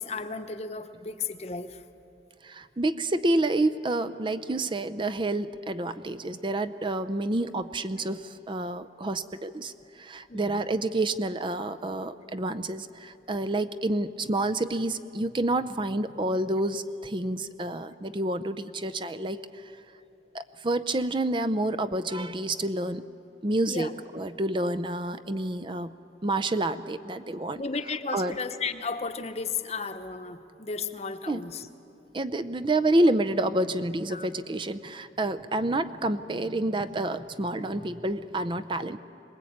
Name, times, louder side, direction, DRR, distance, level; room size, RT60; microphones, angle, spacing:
voice 1, 0.0-1.8 10.3-10.6 23.7-23.9 27.6-31.7 34.1-34.3, left 4 dB, 35° left, 9 dB, 0.9 m, -34 dB
voice 2, 2.4-19.7 20.3-23.0 23.4-25.9 26.2-27.6 28.1-28.4 31.3-31.4 32.1-39.0, right 2 dB, 30° right, 10 dB, 0.5 m, -28 dB
23.0 x 20.5 x 8.7 m, 2.9 s
head